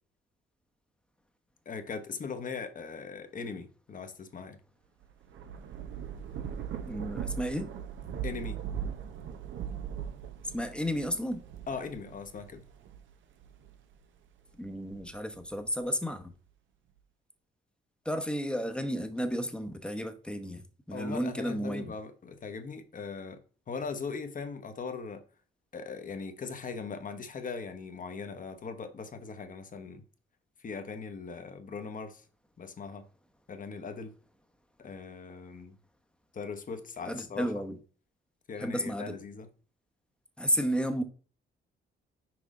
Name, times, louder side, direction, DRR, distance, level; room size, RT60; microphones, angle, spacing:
voice 1, 1.6-4.6 8.2-8.6 11.7-12.6 20.9-23.4 23.7-25.2 25.7-30.0 30.6-32.2 32.6-33.0 33.5-34.1 34.8-35.7 36.3-37.5 38.5-39.5, left 5 dB, 40° left, 1.1 m, -40 dB
Thunder / Rain, 5.0-13.9 14.5-15.8, right 8 dB, 75° right, 0.9 m, -40 dB
voice 2, 6.8-7.7 10.4-11.4 14.6-16.2 18.0-21.9 37.1-37.8 38.6-39.2 40.4-41.0, equal, 5° left, 1.0 m, -32 dB
6.1 x 4.8 x 3.7 m
cardioid pair, 90°, 20 cm